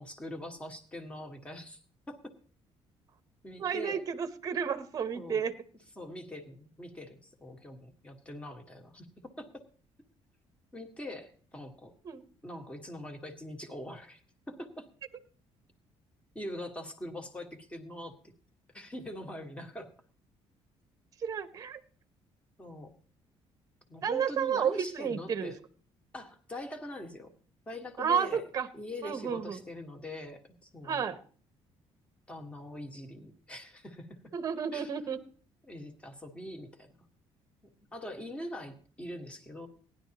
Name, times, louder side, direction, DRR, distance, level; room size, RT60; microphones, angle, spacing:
voice 1, 0.0-1.8 2.1-2.2 3.4-4.0 5.1-5.4 6.0-9.6 10.7-11.9 12.4-14.2 14.5-14.9 16.3-18.3 18.7-19.9 22.6-22.9 23.9-25.6 26.1-27.3 27.7-28.4 28.7-31.0 32.3-34.1 34.7-34.9 35.7-36.9 37.9-39.7, left 1 dB, 10° left, 4 dB, 1.6 m, -43 dB
voice 2, 3.6-5.6 12.0-12.2 21.2-21.8 24.0-25.5 28.0-28.7 29.0-29.6 30.8-31.2 34.3-35.2, right 7 dB, 30° right, 10 dB, 0.9 m, -31 dB
18.0 x 11.0 x 2.9 m, 0.43 s
cardioid pair, 155°, 11 cm